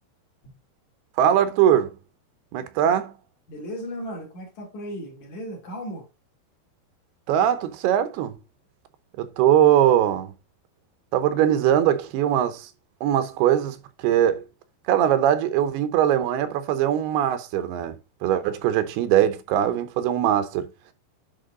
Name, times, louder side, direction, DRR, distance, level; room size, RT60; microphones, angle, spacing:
voice 1, 1.2-1.9 2.5-3.1 7.3-8.4 9.2-10.3 11.1-12.7 13.0-13.8 14.0-14.4 14.9-18.0 18.2-20.7, right 10 dB, 85° right, 2.9 m, -21 dB
voice 2, 3.5-6.1, equal, 50° left, 3.6 m, -35 dB
10.5 x 4.4 x 3.8 m
omnidirectional pair, 4.5 m